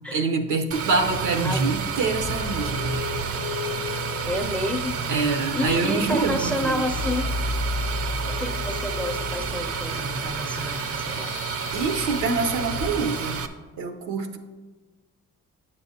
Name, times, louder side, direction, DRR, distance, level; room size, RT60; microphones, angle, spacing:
voice 1, 0.1-3.1 5.1-6.8 11.7-13.4 13.8-14.4, right 4 dB, 80° right, 6 dB, 0.8 m, -25 dB
sound 1, 0.7-13.5, right 6 dB, 50° right, 0.6 m, -30 dB
sound 2, 2.2-12.9, left 4 dB, 85° left, 0.5 m, -34 dB
voice 2, 4.2-5.0 5.5-7.3 8.3-11.4, left 1 dB, 5° left, 5 dB, 0.5 m, -29 dB
9.1 x 6.9 x 2.7 m, 1.3 s
cardioid pair, 90°, 30 cm